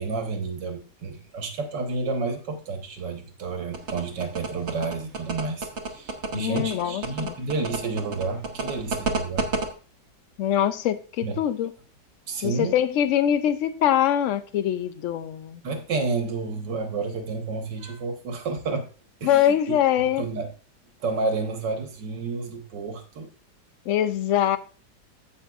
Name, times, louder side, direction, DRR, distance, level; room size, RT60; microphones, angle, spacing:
voice 1, 0.0-9.5 11.2-11.4 12.3-12.7 15.6-18.9 19.2-19.6 20.2-20.5 21.0-23.3, right 4 dB, 85° right, 1.9 m, -30 dB
sound 1, 3.7-9.7, right 4 dB, 45° right, 1.2 m, -29 dB
voice 2, 6.3-7.3 10.4-11.7 12.4-15.6 19.2-20.3 23.9-24.6, left 10 dB, 90° left, 0.6 m, -23 dB
15.5 x 5.3 x 2.4 m
omnidirectional pair, 1.8 m